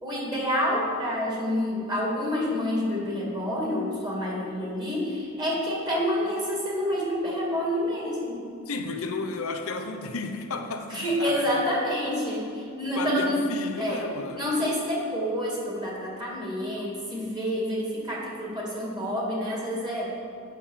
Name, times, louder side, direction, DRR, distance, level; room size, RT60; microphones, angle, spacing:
voice 1, 0.0-8.4 10.9-13.5 13.8-14.1 14.4-20.1, equal, 20° right, -4 dB, 2.3 m, -28 dB
voice 2, 8.7-11.5 12.9-14.4, left 3 dB, 70° left, 4 dB, 0.8 m, -33 dB
8.5 x 5.9 x 7.4 m, 2.4 s
head